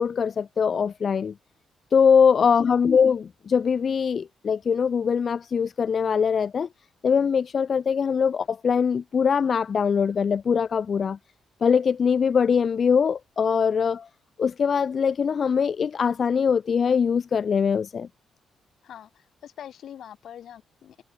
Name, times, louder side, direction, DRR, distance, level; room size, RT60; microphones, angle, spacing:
voice 1, 0.0-1.3 1.9-6.7 7.0-11.2 11.6-14.1 14.4-18.1, left 6 dB, 40° left, 0.5 m, -22 dB
voice 2, 18.8-21.0, left 10 dB, 60° left, 5.4 m, -44 dB
cardioid pair, 165°, 0 cm